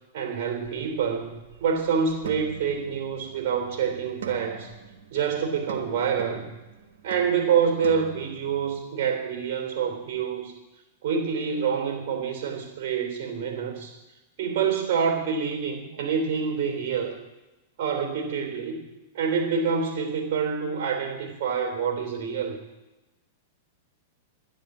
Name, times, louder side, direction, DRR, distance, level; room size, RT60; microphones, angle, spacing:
voice 1, 0.1-1.3 1.6-4.7 5.1-6.5 7.0-10.5 11.0-13.9 14.4-17.2 17.8-18.8 19.1-22.6, right 6 dB, 60° right, 4 dB, 3.4 m, -27 dB
sound 1, 0.6-8.8, right 7 dB, 85° right, 1.4 m, -43 dB
10.5 x 10.0 x 7.4 m, 1.0 s
hypercardioid pair, 130°, 0 cm